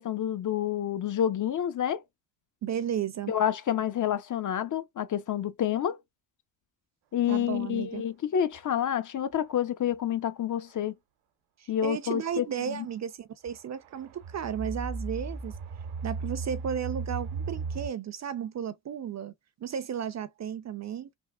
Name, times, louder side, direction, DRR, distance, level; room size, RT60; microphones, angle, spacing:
voice 1, 0.0-2.0 3.3-6.0 7.1-10.9 11.7-12.8, left 10 dB, 40° left, 0.6 m, -28 dB
voice 2, 2.6-3.3 7.3-8.0 11.6-15.5 16.0-19.3 19.6-21.2, right 8 dB, 35° right, 0.5 m, -34 dB
sound 1, 8.5-8.6 9.3-9.7 10.7-10.8 12.6-12.9 13.5-17.9, right 4 dB, 85° right, 0.9 m, -36 dB
3.5 x 2.1 x 2.2 m
supercardioid pair, 75°, 46 cm